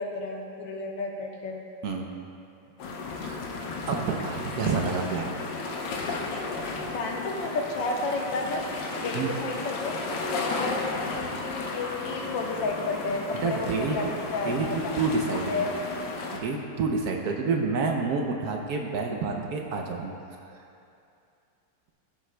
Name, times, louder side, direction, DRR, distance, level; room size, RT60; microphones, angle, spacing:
voice 1, 0.0-1.6 6.9-8.6 9.0-9.9 10.4-14.9 15.3-15.8, left 3 dB, 90° left, 1 dB, 1.7 m, -32 dB
sound 1, 2.8-16.4, left 3 dB, 70° left, 1.4 m, -34 dB
voice 2, 3.9-5.4 9.1-9.3 13.4-14.0 14.4-14.7 15.0-15.7 16.3-20.1, right 4 dB, 65° right, 2 dB, 1.1 m, -28 dB
16.0 x 7.3 x 2.2 m, 2.7 s
omnidirectional pair, 2.0 m